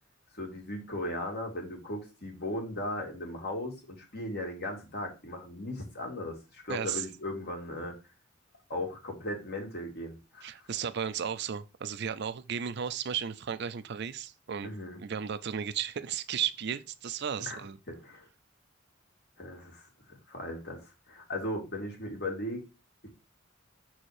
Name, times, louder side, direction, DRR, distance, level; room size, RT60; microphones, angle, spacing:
voice 1, 0.3-8.0 8.7-10.5 14.6-15.0 17.4-18.3 19.4-22.6 23.0-23.1, left 1 dB, 55° left, 2.2 m, -37 dB
voice 2, 6.7-7.0 10.4-14.7 15.0-17.8, right 8 dB, 55° right, 0.5 m, -34 dB
6.3 x 4.3 x 4.8 m
head